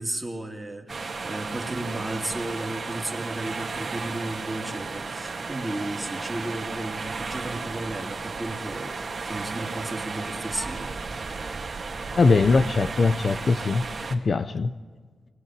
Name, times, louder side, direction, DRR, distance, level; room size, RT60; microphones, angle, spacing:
voice 1, 0.0-10.9, right 1 dB, 10° right, 2.5 m, -34 dB
sound 1, 0.9-14.2, right 4 dB, 40° right, 2.2 m, -34 dB
voice 2, 12.1-13.8 14.1-14.7, left 4 dB, 45° left, 0.6 m, -21 dB
24.0 x 19.5 x 9.1 m
wide cardioid pair, 140°, 0 cm